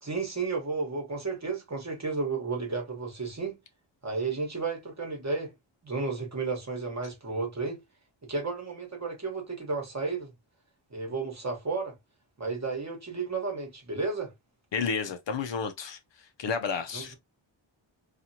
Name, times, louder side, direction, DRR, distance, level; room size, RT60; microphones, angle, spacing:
voice 1, 0.0-3.6 4.0-5.5 5.8-7.8 8.2-10.3 10.9-11.9 12.4-14.3 16.9-17.1, right 4 dB, 35° right, 1.1 m, -32 dB
voice 2, 14.7-17.1, left 5 dB, 60° left, 0.6 m, -32 dB
2.8 x 2.4 x 2.7 m
wide cardioid pair, 130°, 49 cm